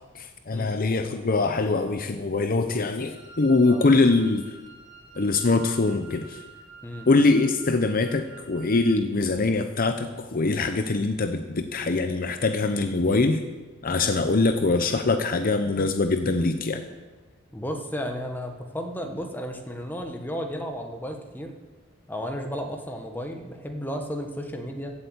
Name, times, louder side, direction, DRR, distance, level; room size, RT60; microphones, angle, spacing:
voice 1, 0.1-4.6 5.2-6.4 7.1-13.4 13.8-16.9, left 3 dB, 45° left, 8 dB, 0.7 m, -23 dB
Wind instrument woodwind instrument, 3.0-9.0, right 4 dB, 25° right, 4.0 m, -49 dB
voice 2, 17.5-21.5 22.1-24.9, equal, 10° left, 4 dB, 1.4 m, -33 dB
15.5 x 8.1 x 7.9 m, 1.3 s
head